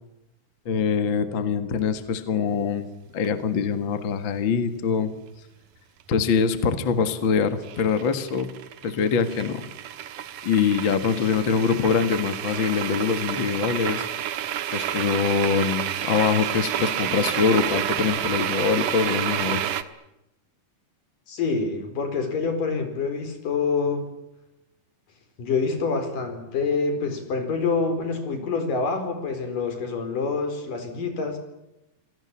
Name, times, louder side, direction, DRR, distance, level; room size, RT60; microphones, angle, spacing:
voice 1, 0.7-2.9 3.1-5.1 6.1-8.5 8.8-9.7 10.4-14.0 14.7-19.6, left 6 dB, 45° left, 10 dB, 2.1 m, -24 dB
sound 1, 3.2-3.3 7.6-19.8, right 11 dB, 75° right, 2.8 m, -29 dB
voice 2, 21.3-24.1 25.4-31.4, left 4 dB, 80° left, 7 dB, 6.0 m, -26 dB
27.5 x 18.5 x 10.0 m, 0.90 s
omnidirectional pair, 3.8 m